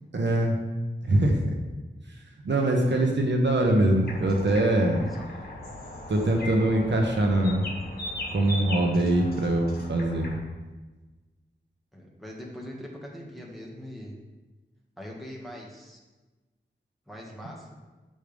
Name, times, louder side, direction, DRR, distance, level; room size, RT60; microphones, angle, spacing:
voice 1, 0.1-0.6 1.0-1.6 2.4-5.1 6.1-7.7 8.3-10.3, right 1 dB, 70° right, 1 dB, 1.1 m, -23 dB
sound 1, 4.0-10.4, left 1 dB, 55° left, 1.8 m, -38 dB
voice 2, 4.7-5.2 6.1-6.5 11.9-14.1 15.0-16.0 17.1-17.7, equal, ahead, -3 dB, 1.9 m, -42 dB
9.1 x 6.5 x 3.5 m, 1.2 s
wide cardioid pair, 80°, 19 cm